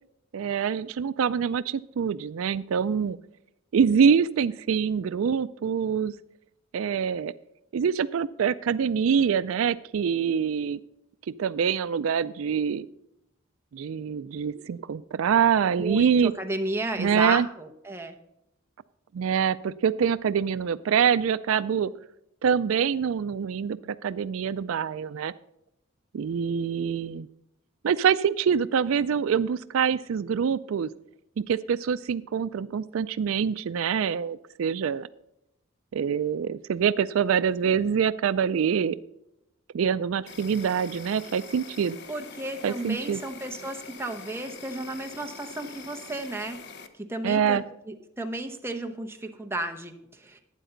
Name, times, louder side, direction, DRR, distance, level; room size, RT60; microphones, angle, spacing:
voice 1, 0.3-3.2 3.7-6.1 6.7-7.3 7.7-10.8 11.4-12.9 13.7-16.3 17.0-17.5 19.1-21.9 22.4-25.3 26.1-27.3 27.8-30.9 31.4-35.1 35.9-39.0 39.7-42.0 42.6-43.2 47.2-47.6, right 7 dB, 80° right, 15 dB, 0.4 m, -25 dB
voice 2, 15.8-18.2 42.1-46.6 47.0-47.6 47.9-50.4, right 2 dB, 10° right, 4 dB, 0.9 m, -33 dB
Insect, 40.3-46.9, left 4 dB, 55° left, 0.9 m, -44 dB
12.0 x 9.2 x 3.9 m, 0.83 s
head